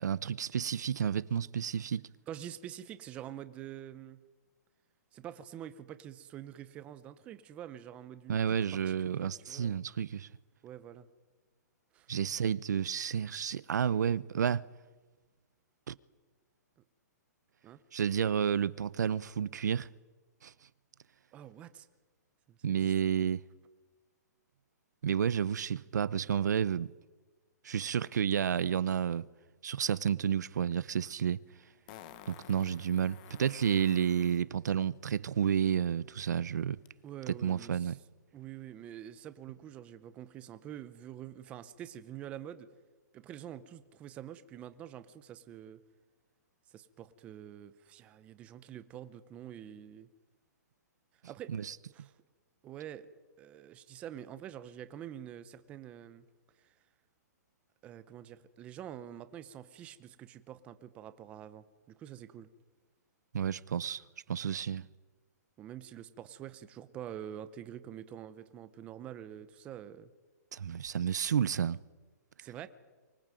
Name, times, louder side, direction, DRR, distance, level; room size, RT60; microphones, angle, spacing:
voice 1, 0.0-2.0 8.3-10.3 12.1-14.6 15.9-16.0 17.9-19.9 20.4-20.5 22.6-23.4 25.0-26.9 27.6-29.3 29.6-31.4 32.3-36.8 37.4-38.0 51.5-51.7 63.3-64.0 64.3-64.8 70.5-71.8, right 8 dB, 75° right, 0.8 m, -31 dB
voice 2, 2.3-4.2 5.1-9.8 10.6-11.1 11.9-12.1 17.6-17.8 21.3-21.9 22.5-22.9 37.0-38.0 38.3-42.7 43.1-45.8 46.7-50.1 51.3-51.5 51.9-52.1 52.6-53.1 53.4-56.3 56.6-56.7 57.8-62.5 65.6-70.1 72.4-72.7, right 10 dB, 15° right, 0.8 m, -46 dB
Fart, 30.8-30.9 31.9-34.4 36.9-37.0, left 12 dB, 25° left, 1.2 m, -52 dB
24.5 x 19.5 x 9.1 m
hypercardioid pair, 175°, 10 cm